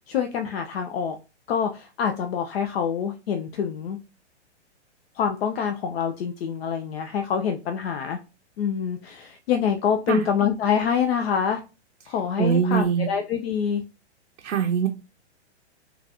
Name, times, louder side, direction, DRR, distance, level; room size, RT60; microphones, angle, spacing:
voice 1, 0.1-1.2 1.5-4.0 5.1-8.2 8.6-11.6 12.1-13.8, left 7 dB, 60° left, 6 dB, 0.5 m, -26 dB
voice 2, 12.4-13.1 14.4-14.9, right 7 dB, 90° right, 3 dB, 0.5 m, -22 dB
3.7 x 2.3 x 2.8 m, 0.30 s
hypercardioid pair, 130°, 35 cm